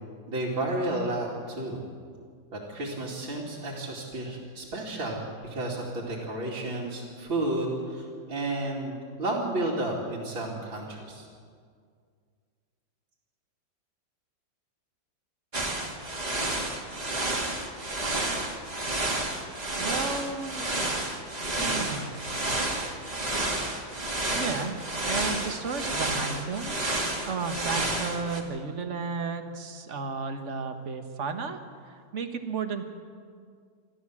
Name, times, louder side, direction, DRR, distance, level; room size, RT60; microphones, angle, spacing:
voice 1, 0.3-1.8 2.5-11.3, right 2 dB, 85° right, -7 dB, 3.5 m, -32 dB
sound 1, 15.5-28.4, right 2 dB, 20° right, 2.0 m, -30 dB
voice 2, 19.8-20.7 21.6-22.2 24.3-26.9 27.2-31.6 31.9-32.8, right 5 dB, 40° right, 7 dB, 1.5 m, -33 dB
26.5 x 13.5 x 7.5 m, 2.1 s
omnidirectional pair, 2.1 m